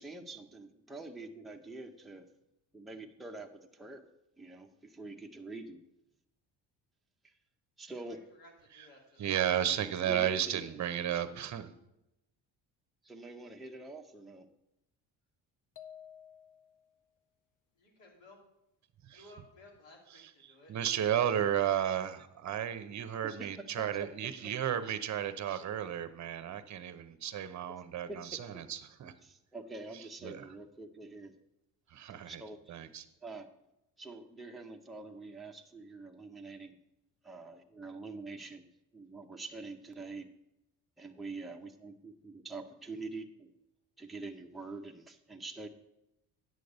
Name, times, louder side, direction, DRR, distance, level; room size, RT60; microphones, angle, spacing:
voice 1, 0.0-2.3 2.7-4.1 4.4-5.8 7.2-7.3 7.8-8.2 10.0-10.8 13.0-14.5 23.2-23.5 24.4-24.5 28.1-28.2 29.2-31.3 32.2-32.8 33.2-33.5 34.0-36.8 37.2-40.3 41.0-43.5 44.0-45.7, right 3 dB, ahead, 2 dB, 0.7 m, -45 dB
voice 2, 7.9-9.3 17.7-18.4 19.1-20.7, left 1 dB, 90° left, -1 dB, 2.9 m, -57 dB
voice 3, 9.2-11.7 19.1-19.2 20.4-29.1 30.2-30.5 31.9-32.4 32.7-33.1, right 10 dB, 40° right, 12 dB, 0.8 m, -33 dB
sound 1, 15.8-16.9, left 9 dB, 50° left, 0.8 m, -52 dB
9.5 x 6.5 x 5.3 m, 0.89 s
cardioid pair, 115°, 42 cm